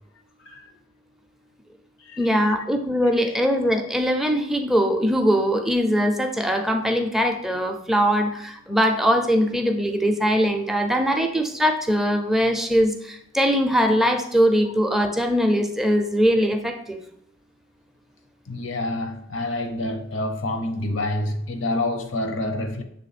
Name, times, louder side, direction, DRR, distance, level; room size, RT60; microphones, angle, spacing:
voice 1, 0.4-0.8 2.0-2.5 3.2-3.3 18.5-22.8, left 1 dB, 70° left, 0.8 m, -28 dB
voice 2, 2.2-17.0, equal, ahead, 0.5 m, -21 dB
6.8 x 3.4 x 4.2 m
head